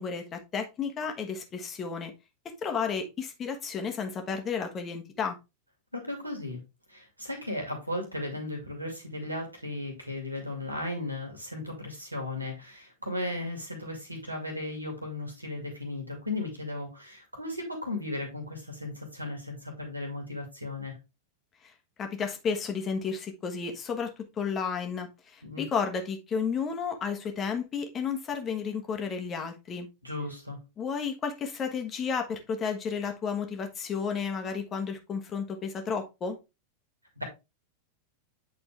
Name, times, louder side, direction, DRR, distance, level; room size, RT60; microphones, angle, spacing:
voice 1, 0.0-2.1 2.6-5.4 21.6-21.7 22.0-29.9 30.8-36.4, left 6 dB, 25° left, 1.3 m, -32 dB
voice 2, 5.9-6.6 6.9-21.0 25.4-25.6 30.0-30.6 37.2-37.3, left 2 dB, 85° right, 2.3 m, -36 dB
8.3 x 4.2 x 3.4 m
figure-of-eight pair, 90°, 0 cm